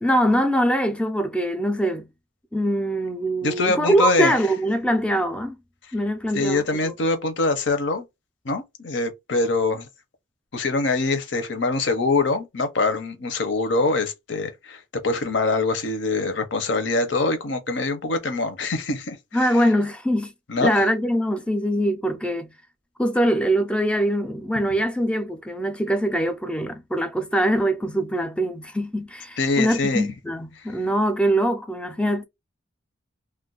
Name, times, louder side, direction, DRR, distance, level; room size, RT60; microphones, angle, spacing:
voice 1, 0.0-2.1 2.5-5.6 5.9-6.9 19.3-20.3 20.6-22.5 23.0-32.2, equal, 5° left, 0.4 m, -23 dB
voice 2, 3.4-4.3 6.3-8.0 8.4-9.9 10.5-19.5 20.5-20.8 29.4-30.1, left 3 dB, 70° left, 0.7 m, -24 dB
2.4 x 2.2 x 3.8 m
head